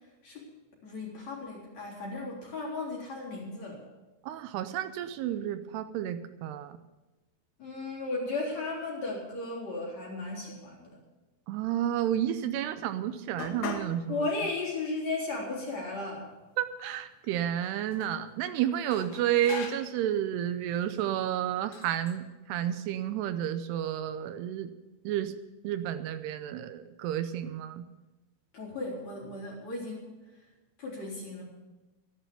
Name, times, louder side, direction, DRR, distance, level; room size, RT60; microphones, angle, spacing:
voice 1, 0.8-3.8 7.6-10.9 14.1-16.3 28.5-30.1 30.8-31.4, left 3 dB, 40° left, -3 dB, 4.6 m, -35 dB
voice 2, 4.2-6.8 11.5-14.2 16.6-24.7 25.0-25.3 25.6-27.8, right 11 dB, 80° right, 10 dB, 2.7 m, -31 dB
sound 1, 13.4-14.0 14.4-14.5 15.3-15.4 15.7-16.6 17.5-18.2 18.9-20.0 20.8-21.0 21.7-22.2, left 5 dB, 65° left, 2.8 m, -41 dB
14.0 x 11.5 x 6.8 m, 1.1 s
omnidirectional pair, 4.8 m